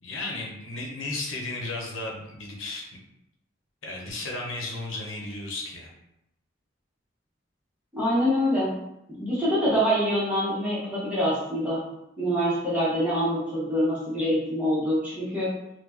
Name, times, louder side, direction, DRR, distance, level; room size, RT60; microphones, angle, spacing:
voice 1, 0.0-2.9 3.8-5.9, left 2 dB, 75° left, -1 dB, 0.9 m, -34 dB
voice 2, 7.9-8.8 9.2-11.8 12.2-15.5, equal, 5° right, -9 dB, 1.0 m, -25 dB
4.2 x 2.3 x 2.9 m, 0.82 s
head